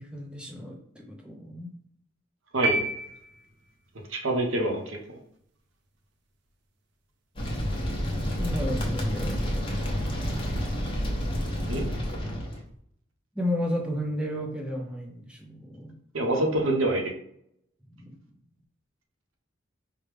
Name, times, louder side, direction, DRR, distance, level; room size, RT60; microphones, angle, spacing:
voice 1, 0.0-1.7 8.4-10.4 13.4-15.9 16.4-16.8 18.0-18.2, equal, 5° right, 0 dB, 0.5 m, -33 dB
sound 1, 2.6-3.9, right 2 dB, 55° right, 0.5 m, -29 dB
voice 2, 3.9-5.2 11.7-11.8 16.1-17.0, right 1 dB, 85° right, 2 dB, 0.9 m, -26 dB
sound 2, 7.4-12.6, equal, 25° left, 0.8 m, -29 dB
4.9 x 2.2 x 3.3 m, 0.69 s
head